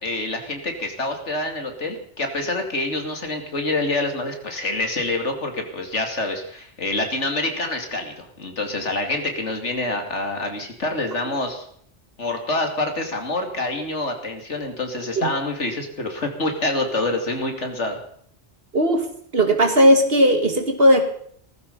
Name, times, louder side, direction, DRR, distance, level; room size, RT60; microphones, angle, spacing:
voice 1, 0.0-11.6 12.2-18.0, left 2 dB, 75° left, 4 dB, 3.1 m, -26 dB
voice 2, 18.7-19.0 19.3-21.1, equal, 55° right, 6 dB, 2.5 m, -16 dB
17.5 x 15.0 x 5.5 m, 0.63 s
omnidirectional pair, 1.2 m